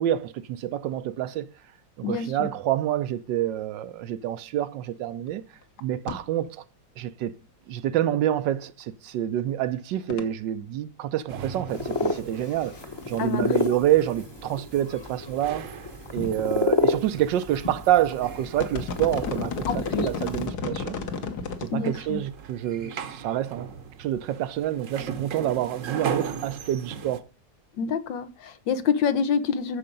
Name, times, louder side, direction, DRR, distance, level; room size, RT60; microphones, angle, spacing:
voice 1, 0.0-1.5 2.0-5.4 5.8-6.6 7.0-7.3 7.7-12.8 13.1-15.7 16.1-21.0 21.6-23.7 24.0-27.2, right 12 dB, 80° right, 1.3 m, -27 dB
voice 2, 2.0-2.5 13.2-13.7 19.7-20.1 21.7-22.2 27.8-29.8, left 6 dB, 80° left, 1.8 m, -27 dB
sound 1, 5.3-5.4 5.6-5.8 6.1-6.2 6.5-6.6 8.8-8.9 10.1-10.2 11.8-12.2 12.4-13.2 13.6-13.7 14.5-14.6 15.1-15.2 15.4-15.5 15.8-16.2 17.2-17.4 17.9-18.1 18.4-21.7 22.1-22.2, left 5 dB, 60° left, 1.8 m, -33 dB
sound 2, 11.3-27.2, right 7 dB, 50° right, 1.1 m, -39 dB
sound 3, 11.7-20.5, left 2 dB, 20° left, 0.9 m, -31 dB
13.5 x 5.0 x 5.3 m
omnidirectional pair, 2.0 m